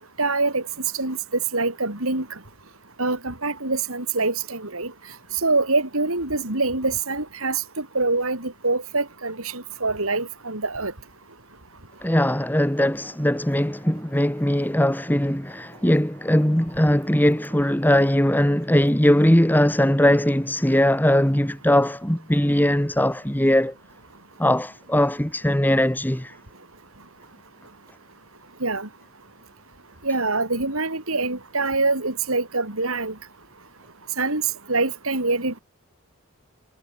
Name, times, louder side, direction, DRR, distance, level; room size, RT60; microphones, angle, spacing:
voice 1, 0.2-0.6 1.0-1.2 1.5-2.3 3.0-4.9 5.4-10.9 28.6-28.9 30.0-33.1 34.2-34.4 34.7-35.6, right 3 dB, 70° right, 5.1 m, -25 dB
voice 2, 12.0-23.7 24.4-26.3, left 1 dB, 10° left, 1.5 m, -20 dB
head